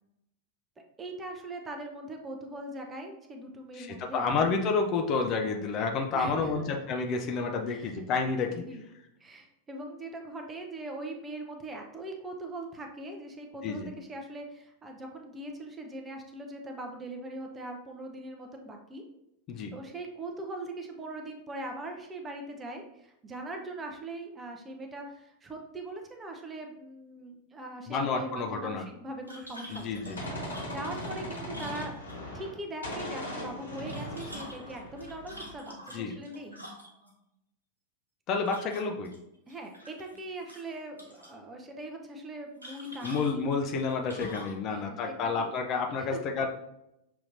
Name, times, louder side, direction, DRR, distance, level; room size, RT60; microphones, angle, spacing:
voice 1, 1.0-4.4 6.1-6.6 7.7-8.0 8.4-8.9 9.2-19.0 19.7-31.9 32.3-36.6 39.5-43.4 44.7-45.5 46.0-46.2, right 1 dB, 20° right, 3 dB, 0.7 m, -41 dB
voice 2, 3.8-8.6 13.6-13.9 19.5-19.7 27.9-28.8 29.7-30.2 35.9-36.1 38.3-39.1 43.0-46.5, left 4 dB, 35° left, 3 dB, 0.5 m, -30 dB
sound 1, 29.3-32.4 33.7-37.1 38.4-39.2 39.5-40.2 40.5-41.3 42.6-44.6, equal, 85° right, 1.0 m, -46 dB
Gunshot gunfire, 29.7-32.6 32.8-35.6, left 1 dB, 75° left, 1.4 m, -39 dB
6.3 x 2.9 x 2.5 m, 0.84 s
figure-of-eight pair, 90°, 0 cm